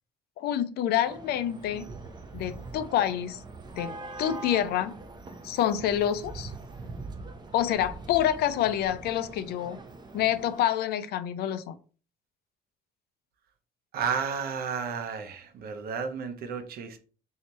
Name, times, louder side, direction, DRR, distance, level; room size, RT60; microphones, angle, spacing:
voice 1, 0.4-1.9 2.3-3.4 3.7-4.9 5.4-6.5 7.5-9.8 10.1-11.8, left 11 dB, 70° left, 13 dB, 0.5 m, -27 dB
sound 1, 1.1-10.6, right 3 dB, 25° right, 0.6 m, -43 dB
voice 2, 13.9-17.0, right 6 dB, 65° right, 7 dB, 0.8 m, -32 dB
3.3 x 2.8 x 4.2 m, 0.38 s
cardioid pair, 110°, 17 cm